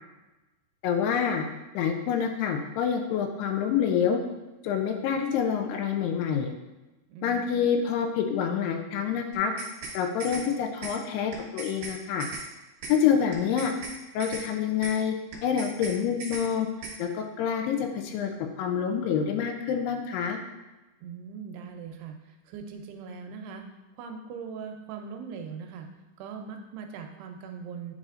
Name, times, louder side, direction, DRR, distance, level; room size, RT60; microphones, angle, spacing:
voice 1, 0.8-1.4 1.7-4.2 4.6-6.5 7.2-9.5 9.9-12.3 12.9-13.7 14.1-15.1 15.4-16.7 17.0-20.4, left 7 dB, 80° left, 4 dB, 2.5 m, -27 dB
voice 2, 7.1-7.7 21.0-22.2 22.5-23.6 24.0-25.9 26.2-27.9, right 6 dB, 80° right, 4 dB, 2.5 m, -40 dB
sound 1, 9.3-9.9 10.2-10.4 10.8-10.9 11.3-11.9 12.2-12.4 12.8-12.9 13.3-13.9 14.2-14.4 14.8-14.9 15.3-15.9 16.2-16.4 16.8-16.9, right 3 dB, 65° right, 1.8 m, -38 dB
9.8 x 4.1 x 2.4 m, 1.1 s
omnidirectional pair, 4.8 m